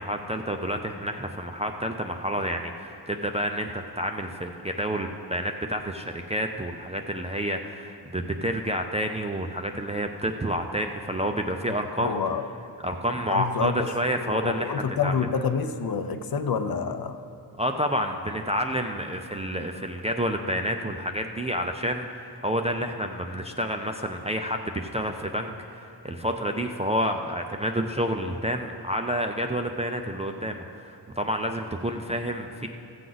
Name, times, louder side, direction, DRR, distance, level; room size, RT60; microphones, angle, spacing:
voice 1, 0.0-12.2 12.8-15.3 17.6-32.7, equal, 15° right, 3 dB, 0.3 m, -29 dB
voice 2, 12.0-12.5 13.3-13.9 14.3-17.2, left 6 dB, 55° left, 8 dB, 0.6 m, -28 dB
15.0 x 7.6 x 3.9 m, 2.5 s
wide cardioid pair, 140°, 44 cm